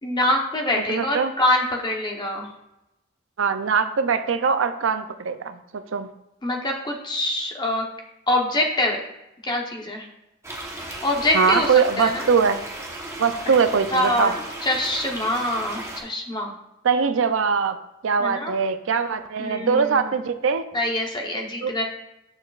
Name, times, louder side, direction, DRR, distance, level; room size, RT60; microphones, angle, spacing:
voice 1, 0.0-2.5 6.4-7.9 8.3-9.0 9.4-10.1 11.0-12.2 13.9-14.3 14.6-16.5 18.2-18.5 19.4-20.1 20.7-21.8, left 1 dB, 20° left, 1 dB, 0.9 m, -24 dB
voice 2, 0.9-1.3 3.4-6.1 11.3-12.6 13.2-14.3 16.8-17.8 18.0-20.6 21.6-21.8, right 5 dB, 70° right, 10 dB, 0.5 m, -22 dB
sound 1, 10.4-16.0, right 1 dB, 15° right, 1.0 m, -35 dB
7.3 x 6.4 x 2.4 m, 0.91 s
head